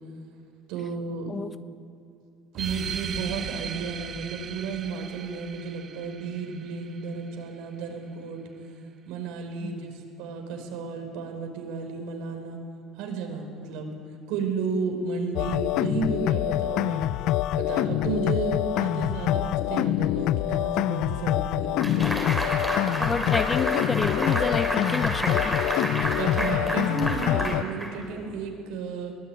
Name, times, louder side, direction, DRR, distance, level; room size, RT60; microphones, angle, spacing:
voice 1, 0.7-1.3 2.5-8.4 9.1-9.9 10.2-12.6 13.0-13.9 14.3-17.1 17.5-22.1 26.1-29.2, right 4 dB, 75° right, 4 dB, 4.8 m, -32 dB
sound 1, 2.6-7.6, right 7 dB, 35° right, 0.9 m, -38 dB
sound 2, 15.3-27.6, left 13 dB, 60° left, 0.5 m, -26 dB
sound 3, 21.8-28.3, equal, ahead, 3.4 m, -30 dB
voice 2, 23.0-25.6, left 4 dB, 20° left, 12 dB, 0.7 m, -29 dB
22.5 x 19.0 x 9.2 m, 2.4 s
cardioid pair, 160°, 0 cm